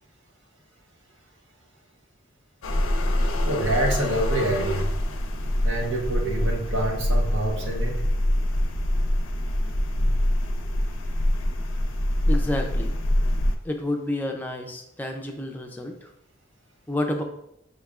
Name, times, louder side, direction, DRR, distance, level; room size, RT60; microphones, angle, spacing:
sound 1, 2.6-13.5, left 1 dB, 90° left, 0.5 m, -25 dB
voice 1, 3.4-4.9 5.6-8.0 10.0-10.1, right 1 dB, 75° right, 0 dB, 0.9 m, -26 dB
voice 2, 12.3-12.9 13.6-16.1 16.9-17.2, left 1 dB, 10° left, 2 dB, 0.4 m, -29 dB
5.4 x 3.2 x 2.4 m, 0.78 s
head